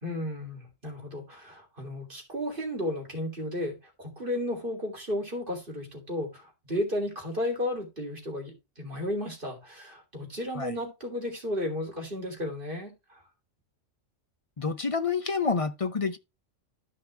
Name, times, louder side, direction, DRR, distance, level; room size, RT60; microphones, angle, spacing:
voice 1, 0.0-13.2, left 1 dB, 45° right, 3.4 m, -33 dB
voice 2, 14.6-16.2, left 5 dB, 35° left, 0.6 m, -28 dB
13.0 x 5.8 x 3.3 m
omnidirectional pair, 1.3 m